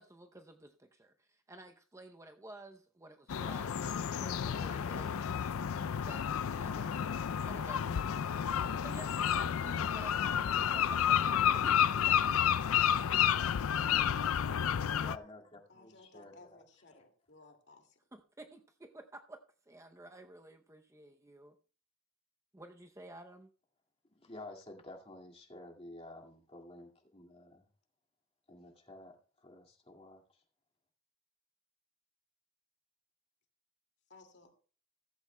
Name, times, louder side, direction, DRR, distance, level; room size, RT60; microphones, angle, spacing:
voice 1, 0.0-7.9 8.7-12.3 18.1-19.4 19.7-21.5 22.5-23.5, right 2 dB, 15° right, 0.6 m, -53 dB
sound 1, 3.3-15.2, left 9 dB, 75° left, 0.4 m, -31 dB
voice 2, 15.0-16.6 16.9-17.0 24.1-27.7 28.5-30.4, left 2 dB, 25° left, 2.0 m, -51 dB
voice 3, 15.7-18.0 34.1-34.5, left 3 dB, 50° left, 2.2 m, -59 dB
15.5 x 14.5 x 2.2 m
head